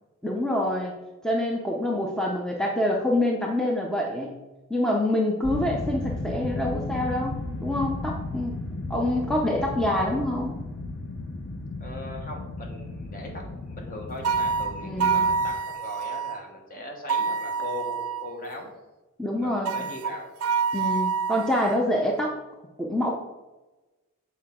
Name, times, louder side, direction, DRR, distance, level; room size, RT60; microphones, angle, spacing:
voice 1, 0.2-0.9 1.2-4.3 4.7-8.6 8.9-10.6 14.8-15.3 19.2-19.7 20.7-22.3 22.8-23.1, left 1 dB, 5° left, -1 dB, 0.5 m, -26 dB
sound 1, 5.4-15.5, left 2 dB, 60° left, 0.7 m, -34 dB
voice 2, 11.8-18.7 19.4-20.3, left 1 dB, 40° left, 1 dB, 1.1 m, -39 dB
sound 2, 14.2-16.4 17.1-18.3 19.7-21.8, right 5 dB, 75° right, 0.4 m, -27 dB
6.4 x 4.2 x 3.7 m, 1.1 s
head